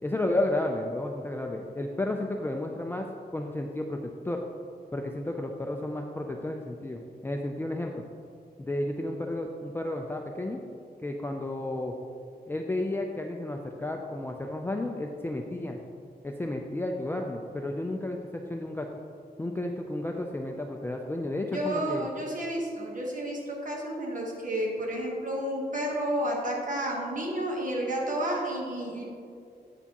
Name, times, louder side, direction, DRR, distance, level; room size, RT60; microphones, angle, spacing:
voice 1, 0.0-4.4 4.9-8.0 8.6-10.6 11.0-12.0 12.5-15.8 16.2-18.9 19.4-22.1, left 1 dB, 15° left, 1 dB, 0.4 m, -32 dB
voice 2, 21.5-29.1, right 1 dB, 50° right, -1 dB, 1.1 m, -31 dB
8.1 x 6.7 x 2.9 m, 2.3 s
wide cardioid pair, 140°, 17 cm